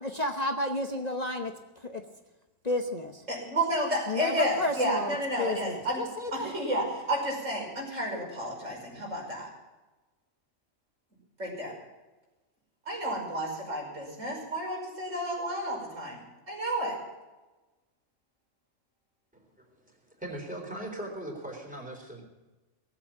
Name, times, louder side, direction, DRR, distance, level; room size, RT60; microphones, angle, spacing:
voice 1, 0.0-1.5 2.6-3.2 4.1-6.5, left 2 dB, 35° left, 4 dB, 1.1 m, -31 dB
voice 2, 3.3-6.0 6.3-9.5 11.4-11.7 12.9-17.0, equal, 80° right, -2 dB, 5.7 m, -31 dB
voice 3, 19.3-22.2, right 1 dB, 5° right, 0 dB, 3.8 m, -40 dB
18.5 x 8.2 x 8.5 m, 1.1 s
omnidirectional pair, 1.3 m